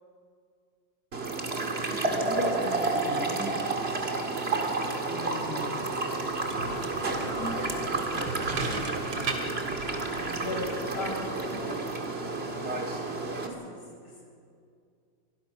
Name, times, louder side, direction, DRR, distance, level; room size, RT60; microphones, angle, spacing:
sound 1, 1.1-13.5, right 3 dB, 30° right, 2.1 m, -30 dB
voice 1, 1.8-3.5 5.1-5.8 7.2-7.8 8.1-9.6, left 1 dB, 55° left, -8 dB, 6.7 m, -40 dB
sound 2, 6.3-11.7, right 4 dB, 75° right, 3.1 m, -38 dB
voice 2, 10.1-10.7 10.9-11.7 13.4-13.8, left 1 dB, 80° left, -1 dB, 6.5 m, -37 dB
24.0 x 20.5 x 5.8 m, 2.3 s
omnidirectional pair, 2.3 m